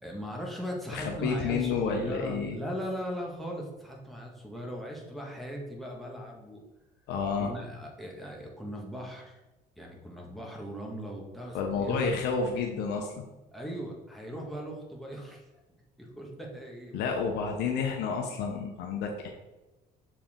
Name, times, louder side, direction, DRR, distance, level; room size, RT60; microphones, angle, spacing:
voice 1, 0.0-6.6 7.4-9.4 9.8-12.2 13.5-15.5 16.0-17.1, equal, ahead, -2 dB, 1.7 m, -38 dB
voice 2, 0.9-2.6 7.1-7.5 11.5-13.2 16.9-19.3, left 5 dB, 85° left, 2 dB, 0.8 m, -30 dB
7.1 x 4.7 x 3.7 m, 1.1 s
cardioid pair, 110°, 17 cm